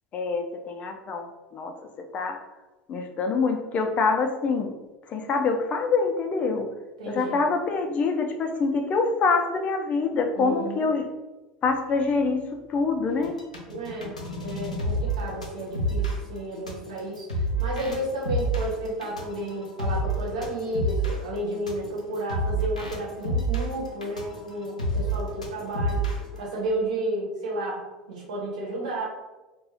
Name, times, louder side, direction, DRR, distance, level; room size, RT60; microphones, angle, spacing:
voice 1, 0.1-2.4 2.9-4.7 5.1-6.7 7.1-11.1 11.6-13.4, left 4 dB, 35° left, 5 dB, 0.4 m, -25 dB
voice 2, 7.0-7.4 10.3-10.9 13.7-26.0 26.4-27.8 28.1-29.1, right 1 dB, 70° right, -4 dB, 1.0 m, -32 dB
sound 1, 13.1-26.4, right 1 dB, 90° left, 0.5 m, -29 dB
2.4 x 2.2 x 3.5 m, 1.1 s
figure-of-eight pair, 75°, 4 cm